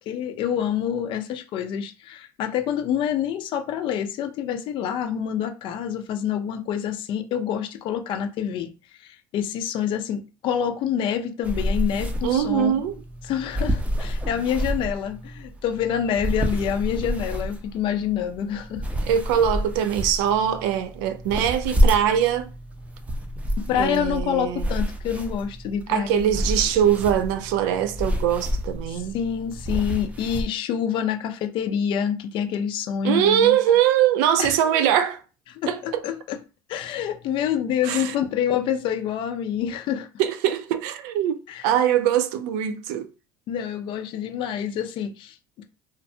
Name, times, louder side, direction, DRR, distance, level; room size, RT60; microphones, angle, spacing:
voice 1, 0.1-8.7 9.0-12.8 13.2-18.8 23.7-26.2 28.9-33.6 34.4-34.5 35.5-36.4 36.7-40.1 41.5-41.6 43.5-45.6, left 9 dB, 55° left, 0.4 m, -27 dB
sound 1, 11.4-30.5, equal, 15° right, 0.5 m, -29 dB
voice 2, 12.2-12.9 19.1-22.5 23.8-24.7 25.9-29.2 33.0-35.2 35.7-36.0 37.9-38.1 40.2-43.1, right 10 dB, 80° right, 0.4 m, -22 dB
2.5 x 2.2 x 2.6 m
supercardioid pair, 100°, 10 cm